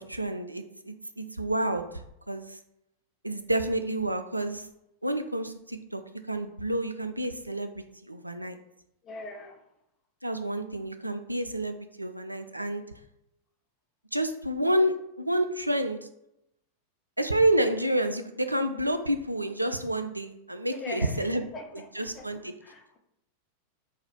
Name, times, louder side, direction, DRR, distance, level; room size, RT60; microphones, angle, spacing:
voice 1, 0.0-2.6 3.2-4.7 5.0-6.0 6.3-8.6 10.2-12.8 14.1-16.0 17.2-21.5 21.7-22.5, right 1 dB, 85° right, 8 dB, 0.4 m, -29 dB
voice 2, 9.0-9.6 20.7-21.3 21.5-22.3 22.6-23.0, left 3 dB, 25° left, 2 dB, 0.8 m, -41 dB
4.0 x 2.6 x 4.4 m, 0.83 s
figure-of-eight pair, 90°, 0 cm